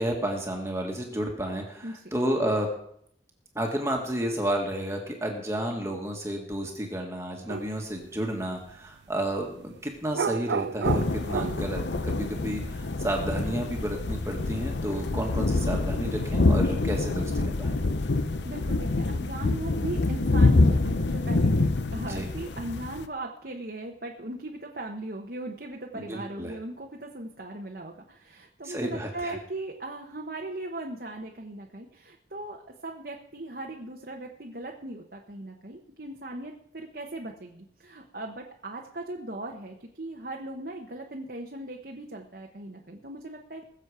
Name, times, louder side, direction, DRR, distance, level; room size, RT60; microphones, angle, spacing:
voice 1, 0.0-2.7 3.6-17.8 21.9-22.3 25.9-26.5 28.7-29.4, right 1 dB, 15° right, 1 dB, 1.7 m, -31 dB
voice 2, 1.8-2.1 18.1-43.6, right 2 dB, 55° right, 0 dB, 1.2 m, -38 dB
sound 1, 7.5-7.7 10.1-11.7, right 6 dB, 80° right, 0.4 m, -30 dB
sound 2, 10.8-23.1, left 2 dB, 85° left, 0.8 m, -26 dB
20.5 x 7.4 x 4.9 m, 0.68 s
head